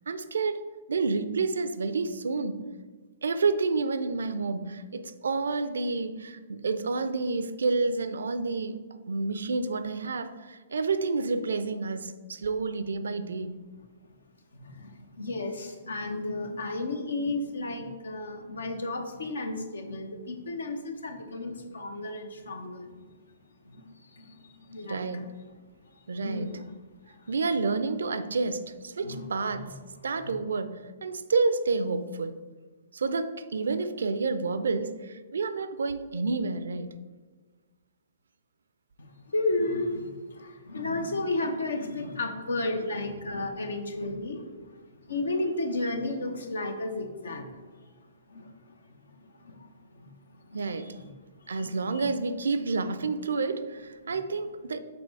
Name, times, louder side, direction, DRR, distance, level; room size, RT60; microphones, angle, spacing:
voice 1, 0.1-0.6 0.9-2.6 3.2-8.8 9.1-13.6 24.9-25.3 26.1-26.5 27.3-29.7 30.0-32.3 32.9-36.9 50.5-50.9 51.5-54.8, right 4 dB, 65° right, 12 dB, 0.5 m, -29 dB
voice 2, 15.2-22.8 23.7-23.8 24.7-25.2 26.2-26.6 27.7-27.9 29.0-29.7 39.0-40.1 40.4-44.4 45.1-47.5 48.3-48.5 49.5-49.7 50.5-51.0 51.5-52.0, left 2 dB, 65° left, 6 dB, 0.9 m, -33 dB
6.8 x 4.3 x 4.6 m, 1.3 s
figure-of-eight pair, 115°, 0 cm